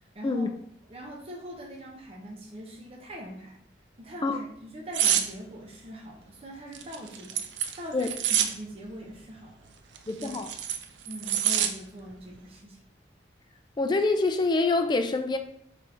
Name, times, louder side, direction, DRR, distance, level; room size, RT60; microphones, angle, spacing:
voice 1, 0.1-0.5 0.9-3.6 4.0-7.4 7.8-9.7 10.2-10.3 11.0-12.8, equal, 35° right, -2 dB, 0.7 m, -42 dB
sound 1, 4.9-5.3 6.7-8.5 10.0-11.7 12.1-12.4, right 9 dB, 85° right, 0.4 m, -26 dB
voice 2, 10.1-10.5 13.8-15.4, left 3 dB, 25° left, 6 dB, 0.3 m, -25 dB
3.5 x 3.3 x 3.8 m, 0.70 s
head